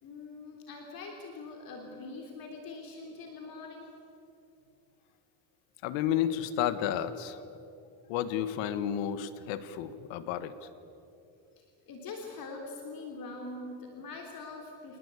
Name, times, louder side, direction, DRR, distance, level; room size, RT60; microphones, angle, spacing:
voice 1, 0.0-3.9 11.6-15.0, left 3 dB, 50° left, 1 dB, 3.6 m, -43 dB
voice 2, 5.8-7.4 8.1-10.5, left 10 dB, 80° left, 12 dB, 1.6 m, -31 dB
27.0 x 19.5 x 8.4 m, 2.7 s
cardioid pair, 140°, 45 cm